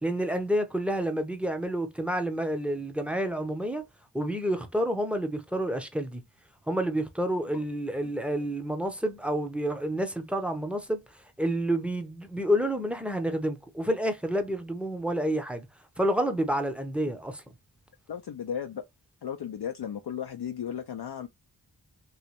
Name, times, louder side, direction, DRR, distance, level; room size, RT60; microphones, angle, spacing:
voice 1, 0.0-3.8 4.1-6.2 6.7-11.0 11.4-15.7 16.0-17.4, equal, 5° right, 0.7 m, -29 dB
voice 2, 18.1-18.8 19.2-21.3, left 8 dB, 65° left, 0.5 m, -35 dB
3.1 x 2.9 x 2.9 m
wide cardioid pair, 65°, 42 cm